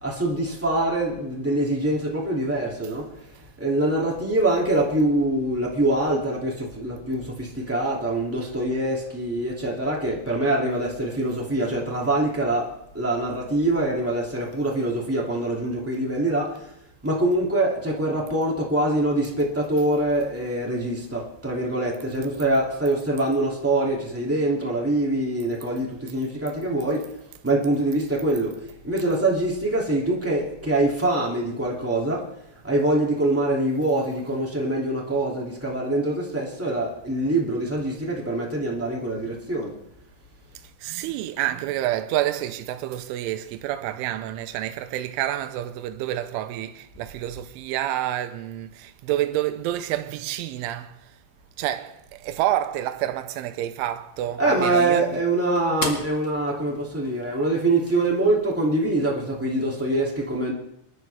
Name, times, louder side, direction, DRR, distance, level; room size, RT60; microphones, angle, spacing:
voice 1, 0.0-3.2 3.6-16.7 17.0-27.1 27.4-32.3 32.6-39.7 54.4-60.5, right 2 dB, 15° right, 0.5 m, -24 dB
voice 2, 40.8-51.1 51.6-55.2, right 13 dB, 85° right, 3.3 m, -28 dB
sound 1, 52.8-58.1, left 2 dB, 55° left, 1.3 m, -38 dB
26.0 x 12.5 x 3.5 m
omnidirectional pair, 5.5 m